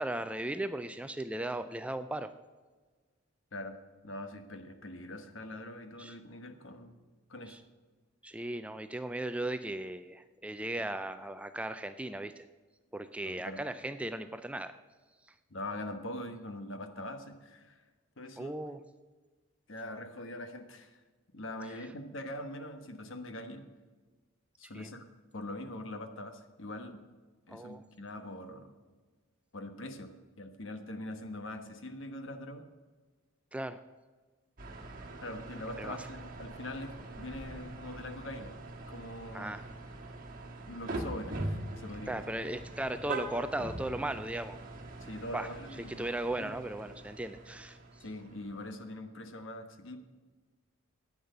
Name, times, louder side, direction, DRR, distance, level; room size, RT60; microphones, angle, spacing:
voice 1, 0.0-2.3 6.0-6.2 7.5-7.6 8.2-12.4 12.9-14.8 18.4-18.8 24.7-24.9 27.5-27.8 33.5-33.8 35.8-36.0 39.3-39.6 42.1-44.6 45.3-45.5 46.0-48.0, right 1 dB, 5° right, 10 dB, 0.3 m, -37 dB
voice 2, 4.0-6.9 7.3-7.6 13.2-13.6 15.5-17.8 18.2-18.5 19.7-21.0 21.3-23.7 24.6-25.0 25.3-27.0 27.5-28.7 29.5-32.7 35.2-38.5 38.9-39.5 40.7-42.2 45.0-46.0 46.4-46.6 48.0-50.0, left 1 dB, 65° left, 8 dB, 1.2 m, -43 dB
sound 1, 34.6-48.9, right 2 dB, 40° right, 1.6 m, -43 dB
10.5 x 8.8 x 6.6 m, 1.4 s
head